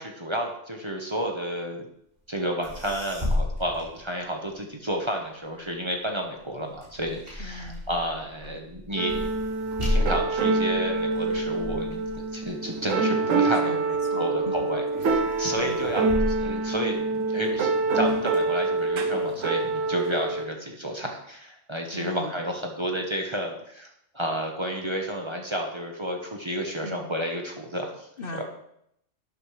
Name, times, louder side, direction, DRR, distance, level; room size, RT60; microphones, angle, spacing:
voice 1, 0.0-1.9 2.3-9.3 9.9-13.7 14.1-17.7 17.9-28.1 28.3-28.4, equal, 25° right, 1 dB, 1.2 m, -31 dB
sound 1, 2.4-2.5 2.6-4.7 5.2-13.8 14.4-14.7 15.0-17.5 18.0-19.0, left 1 dB, 45° right, 3.9 m, -33 dB
voice 2, 7.4-7.8 13.6-14.5 15.6-15.9 21.9-22.3 26.8-27.1 28.2-28.4, left 1 dB, 50° left, 5 dB, 1.1 m, -38 dB
sound 2, 9.0-20.5, right 3 dB, 85° right, 1.4 m, -26 dB
12.0 x 8.9 x 3.4 m, 0.74 s
omnidirectional pair, 1.3 m